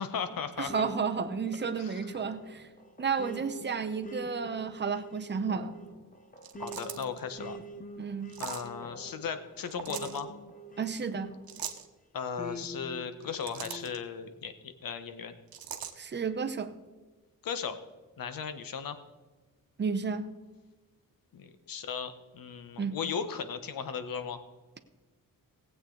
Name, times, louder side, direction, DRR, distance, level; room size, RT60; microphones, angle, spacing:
voice 1, 0.0-0.9 1.8-2.1 6.6-7.6 8.4-10.3 12.1-15.3 17.4-17.8 18.2-19.0 21.3-24.4, left 6 dB, 70° left, 10 dB, 1.1 m, -37 dB
voice 2, 0.6-2.7 3.0-5.8 8.0-8.3 10.8-11.3 16.0-16.8 19.8-20.3 22.8-23.0, right 5 dB, 30° right, 8 dB, 0.8 m, -32 dB
sound 1, 0.7-11.7 12.4-13.9, right 2 dB, 20° left, 0.9 m, -46 dB
sound 2, 6.4-7.2 8.3-8.7 9.7-10.2 11.5-11.9 13.1-14.0 15.5-15.9, right 8 dB, 80° right, 1.2 m, -40 dB
19.0 x 8.2 x 3.9 m, 1.2 s
wide cardioid pair, 180°, 36 cm